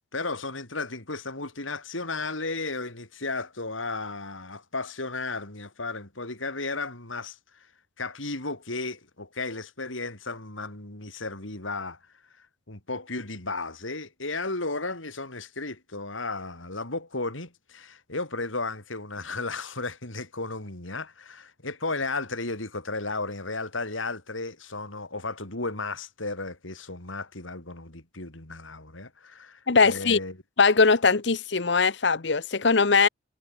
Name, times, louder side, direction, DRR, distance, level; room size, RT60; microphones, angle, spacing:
voice 1, 0.1-7.4 8.0-12.0 12.7-30.4, left 3 dB, 85° left, 5.1 m, -34 dB
voice 2, 29.7-30.2 30.6-33.1, left 4 dB, 60° left, 0.9 m, -21 dB
head